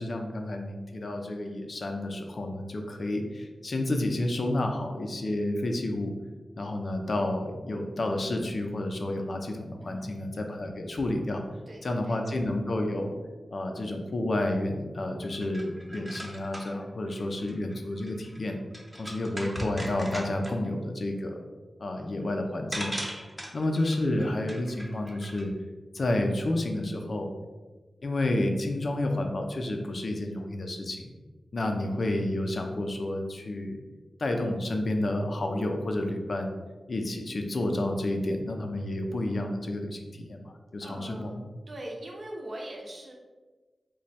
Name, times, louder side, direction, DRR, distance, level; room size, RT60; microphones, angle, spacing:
voice 1, 0.0-6.1 6.6-11.4 11.8-13.1 13.5-18.6 19.0-21.4 21.8-22.9 23.5-25.5 25.9-27.3 28.0-31.1 31.5-33.8 34.2-36.5 36.9-41.4, left 1 dB, 60° left, 3 dB, 0.5 m, -30 dB
voice 2, 9.8-10.4 11.7-12.2 40.8-41.4 41.7-43.1, right 1 dB, 50° right, -1 dB, 0.6 m, -42 dB
sound 1, 15.2-20.7 22.2-22.3 22.7-25.4, equal, 10° right, 0.7 m, -40 dB
3.2 x 2.2 x 4.0 m, 1.3 s
cardioid pair, 55°, 0 cm